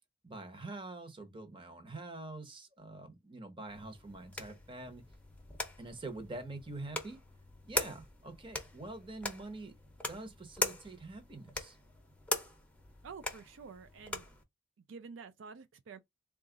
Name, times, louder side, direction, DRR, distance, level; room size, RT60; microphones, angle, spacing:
voice 1, 0.2-5.0 5.8-7.2 7.6-9.7 10.1-11.8, right 2 dB, 25° right, 0.9 m, -45 dB
sound 1, 3.7-14.4, left 2 dB, 5° left, 0.7 m, -41 dB
voice 2, 13.0-14.3 14.8-16.0, right 5 dB, 75° right, 0.4 m, -49 dB
3.8 x 2.4 x 3.7 m
head